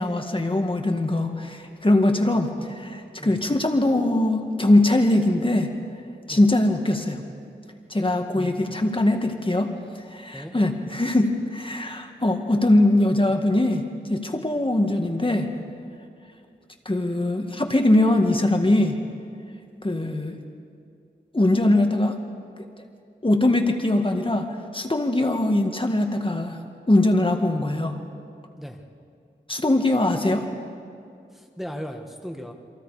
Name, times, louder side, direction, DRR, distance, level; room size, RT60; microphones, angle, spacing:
voice 1, 0.0-5.7 6.3-7.2 7.9-9.7 10.1-13.8 14.1-15.5 16.9-19.0 19.8-20.4 21.3-22.2 22.6-22.7 23.2-24.5 24.7-26.6 26.9-28.0 29.5-30.5, left 1 dB, 30° left, 4 dB, 1.8 m, -21 dB
voice 2, 8.3-8.7 10.3-10.6 28.6-28.8 31.3-32.5, equal, ahead, 3 dB, 1.8 m, -37 dB
28.5 x 26.0 x 5.0 m, 2.4 s
wide cardioid pair, 70°, 19 cm